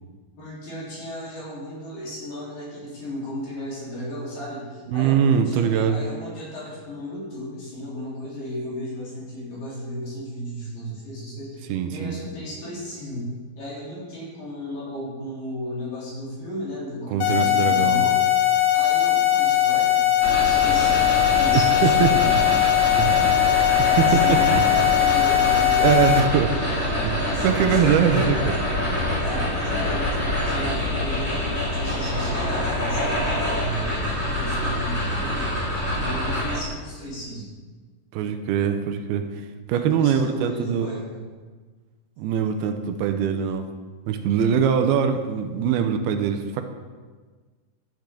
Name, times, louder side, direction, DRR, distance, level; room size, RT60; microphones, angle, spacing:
voice 1, 0.4-18.2 18.7-20.1 20.4-22.6 23.7-26.3 27.0-28.6 29.2-35.6 36.0-37.5 39.7-41.2, equal, 60° left, -7 dB, 5.4 m, -34 dB
voice 2, 4.9-6.0 11.7-12.2 17.1-18.0 21.8-22.2 23.0-23.4 23.8-24.7 25.8-26.5 27.0-28.5 38.1-39.2 39.7-41.0 42.2-43.7 44.1-46.6, right 7 dB, 90° right, 7 dB, 2.7 m, -22 dB
sound 1, 17.2-26.2, left 12 dB, 75° left, 2.6 m, -20 dB
sound 2, 20.2-36.6, left 1 dB, 25° left, 3.3 m, -26 dB
12.0 x 10.5 x 3.9 m, 1.4 s
omnidirectional pair, 4.4 m